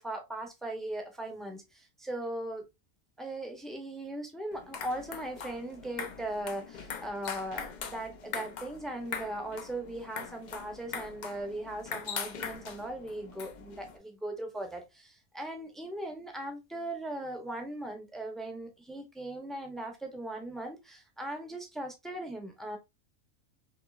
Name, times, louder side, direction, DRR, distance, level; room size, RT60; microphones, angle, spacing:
voice 1, 0.0-2.6 3.2-22.8, right 1 dB, ahead, 0.4 m, -39 dB
sound 1, 4.5-14.0, left 6 dB, 90° left, 0.4 m, -42 dB
4.3 x 2.9 x 2.4 m
omnidirectional pair, 1.5 m